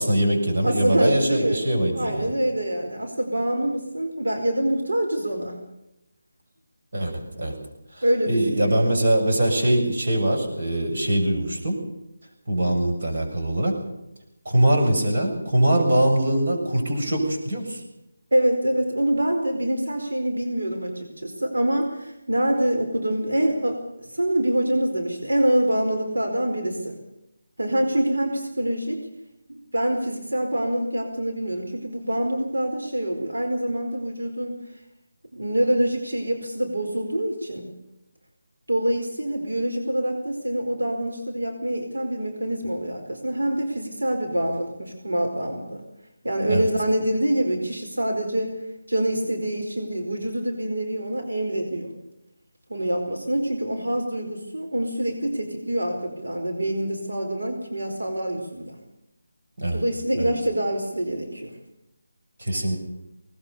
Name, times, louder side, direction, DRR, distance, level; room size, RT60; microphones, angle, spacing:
voice 1, 0.0-2.3 6.9-7.5 7.9-11.8 12.5-13.7 14.5-17.8 46.5-46.6 59.6-59.8 60.2-60.3 62.4-62.8, right 1 dB, 50° right, 2 dB, 7.2 m, -22 dB
voice 2, 0.6-1.6 1.9-5.6 8.0-9.0 18.3-27.0 27.6-29.0 29.5-34.6 35.3-37.7 38.7-45.8 46.2-48.6 48.9-51.9 52.7-58.8 59.7-61.5, right 1 dB, 90° right, 2 dB, 4.6 m, -25 dB
20.0 x 19.5 x 7.0 m, 0.86 s
figure-of-eight pair, 170°, 0 cm